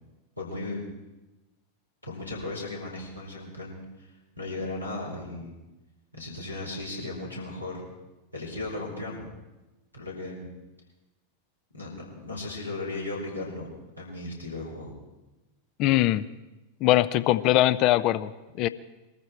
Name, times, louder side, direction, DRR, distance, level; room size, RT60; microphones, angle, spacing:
voice 1, 0.4-0.8 2.0-4.1 4.4-5.5 6.1-7.8 8.3-9.3 9.9-10.5 11.7-14.9, left 2 dB, 85° left, -3 dB, 4.7 m, -36 dB
voice 2, 15.8-16.2 16.8-18.3 18.6-18.7, left 15 dB, 40° left, 16 dB, 0.6 m, -21 dB
22.5 x 14.0 x 4.6 m, 1.1 s
figure-of-eight pair, 90°, 0 cm